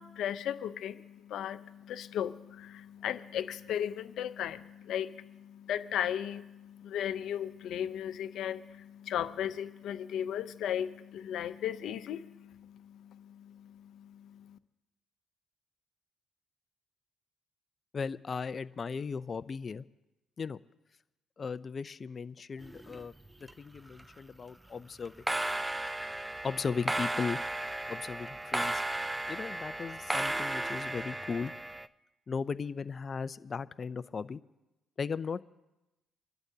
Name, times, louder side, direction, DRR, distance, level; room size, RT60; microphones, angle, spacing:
voice 1, 0.0-14.6, left 10 dB, 75° left, 12 dB, 0.7 m, -36 dB
voice 2, 17.9-19.9 20.4-20.6 21.4-23.1 23.4-25.1 26.4-27.4 27.9-28.8 29.3-31.5 32.3-34.4 35.0-35.4, left 5 dB, 40° left, 14 dB, 0.5 m, -37 dB
sound 1, 22.6-23.5 23.8-24.2 25.1-31.9, right 1 dB, 10° right, 0.5 m, -35 dB
27.0 x 12.0 x 2.8 m, 0.99 s
cardioid pair, 85°, 0 cm